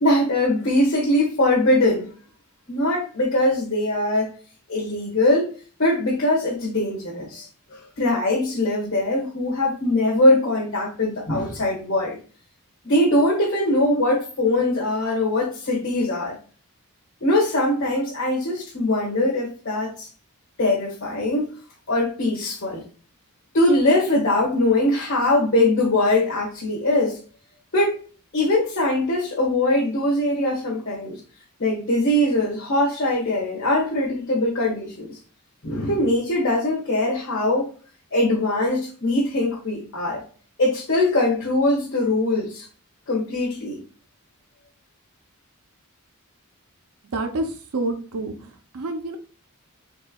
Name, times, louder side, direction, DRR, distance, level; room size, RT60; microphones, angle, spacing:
voice 1, 0.0-2.1 2.7-4.3 4.7-5.5 5.8-12.2 12.8-16.4 17.2-20.1 20.6-21.5 21.9-22.8 23.5-27.2 27.7-28.0 28.3-31.2 31.6-35.2 35.6-37.7 38.1-40.2 40.6-42.7 43.1-43.8, left 1 dB, 55° left, -6 dB, 1.5 m, -21 dB
voice 2, 47.1-49.2, right 2 dB, 75° right, 6 dB, 0.7 m, -28 dB
4.5 x 3.8 x 2.3 m, 0.39 s
head